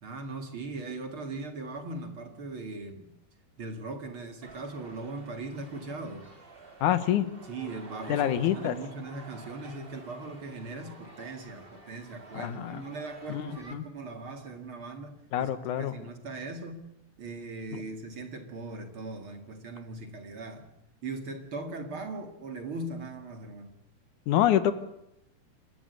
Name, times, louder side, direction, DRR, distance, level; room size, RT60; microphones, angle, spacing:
voice 1, 0.0-3.1 3.6-6.3 7.4-15.5 15.8-16.9 17.2-20.7 21.0-23.7, right 3 dB, 45° right, 6 dB, 2.6 m, -39 dB
sound 1, 4.4-13.7, right 2 dB, 20° right, 2.4 m, -49 dB
voice 2, 6.8-7.3 8.1-8.8 12.3-12.8 13.3-13.9 15.3-15.9 17.7-17.8 24.3-24.7, left 11 dB, 70° left, 12 dB, 2.5 m, -26 dB
28.0 x 12.5 x 8.2 m, 0.83 s
omnidirectional pair, 3.7 m